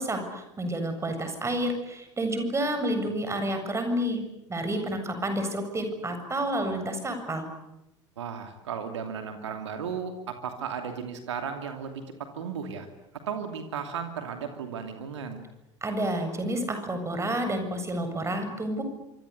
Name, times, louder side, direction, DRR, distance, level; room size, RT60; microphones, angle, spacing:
voice 1, 0.0-4.2 4.5-7.4 15.8-18.8, right 1 dB, 20° right, 7 dB, 7.6 m, -29 dB
voice 2, 8.2-12.9 13.3-15.4, right 6 dB, 70° right, 6 dB, 2.8 m, -35 dB
26.0 x 25.5 x 8.5 m, 0.88 s
figure-of-eight pair, 70°, 16 cm